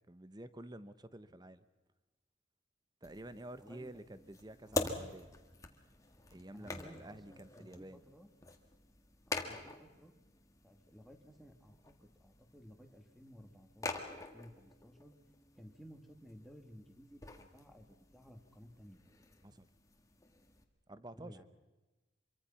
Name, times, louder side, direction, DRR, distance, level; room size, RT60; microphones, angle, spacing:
voice 1, 0.1-1.6 3.0-5.3 6.3-8.0 19.4-19.7 20.9-21.4, right 1 dB, 20° right, 13 dB, 0.9 m, -50 dB
sound 1, 3.0-20.6, left 2 dB, 15° left, 1.7 m, -46 dB
voice 2, 3.6-4.3 4.6-4.9 6.5-8.3 9.3-10.1 10.6-15.1 15.6-19.0 21.1-21.5, equal, ahead, 5 dB, 2.2 m, -57 dB
26.0 x 23.5 x 5.7 m, 1.1 s
head